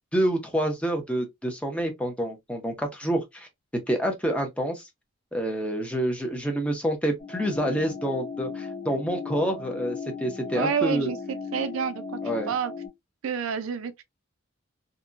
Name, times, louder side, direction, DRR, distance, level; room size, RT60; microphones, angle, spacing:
voice 1, 0.1-4.8 5.3-11.1 12.2-12.5, right 1 dB, 5° left, 0.6 m, -28 dB
sound 1, 7.2-12.9, left 5 dB, 35° left, 1.1 m, -36 dB
voice 2, 10.5-12.0 12.5-12.7 13.2-14.0, right 6 dB, 75° right, 0.4 m, -28 dB
2.7 x 2.2 x 2.4 m
head